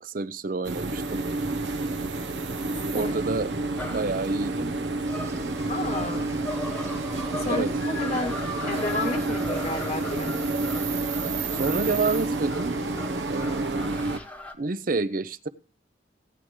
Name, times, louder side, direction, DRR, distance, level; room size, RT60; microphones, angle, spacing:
voice 1, 0.0-1.2 2.9-4.7 7.4-7.7 11.5-12.8 13.3-13.9 14.6-15.5, right 3 dB, 45° right, 16 dB, 0.6 m, -29 dB
sound 1, 0.6-14.2, right 2 dB, 75° right, 0.9 m, -29 dB
sound 2, 3.8-14.5, left 2 dB, 10° left, 1.0 m, -39 dB
sound 3, 5.0-13.7, right 1 dB, 15° right, 1.0 m, -44 dB
voice 2, 5.7-6.3 7.4-10.5, left 2 dB, 35° left, 4 dB, 1.0 m, -31 dB
16.0 x 9.7 x 3.1 m, 0.34 s
head